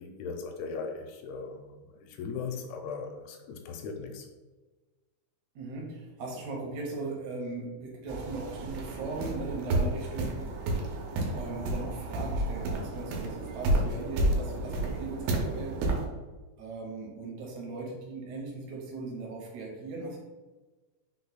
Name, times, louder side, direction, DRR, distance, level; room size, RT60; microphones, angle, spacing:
voice 1, 0.0-4.3, left 5 dB, 80° left, 4 dB, 2.5 m, -38 dB
voice 2, 5.6-10.5 11.2-15.8 16.6-20.2, right 3 dB, 75° right, -2 dB, 1.8 m, -38 dB
sound 1, 8.1-16.0, right 1 dB, 90° right, 2.7 m, -31 dB
5.9 x 2.2 x 3.9 m, 1.2 s
omnidirectional pair, 4.5 m